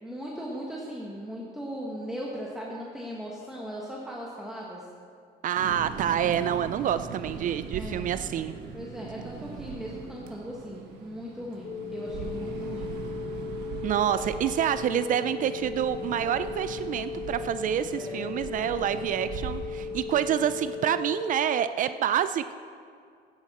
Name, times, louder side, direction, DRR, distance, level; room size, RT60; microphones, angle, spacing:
voice 1, 0.0-4.8 7.7-8.1 8.7-12.9 17.9-18.4, equal, 5° right, -4 dB, 1.4 m, -38 dB
voice 2, 5.4-8.5 13.8-22.5, right 10 dB, 50° right, 12 dB, 0.4 m, -27 dB
sound 1, 5.6-20.9, right 6 dB, 90° right, 1.2 m, -40 dB
sound 2, 11.6-21.6, left 6 dB, 55° left, 2.6 m, -37 dB
12.0 x 9.8 x 4.2 m, 2.3 s
cardioid pair, 110°, 17 cm